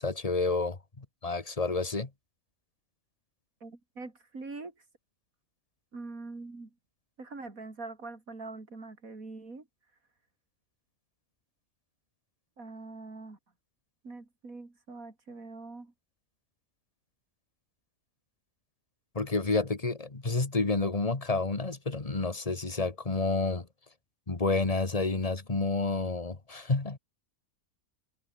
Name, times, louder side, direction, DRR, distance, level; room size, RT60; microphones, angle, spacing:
voice 1, 0.0-2.1 19.2-23.7 24.3-27.0, left 3 dB, 25° left, 1.8 m, -29 dB
voice 2, 3.6-4.7 5.9-6.7 7.2-9.6 12.6-13.4 14.0-15.9, right 3 dB, 75° right, 4.3 m, -43 dB
omnidirectional pair, 1.5 m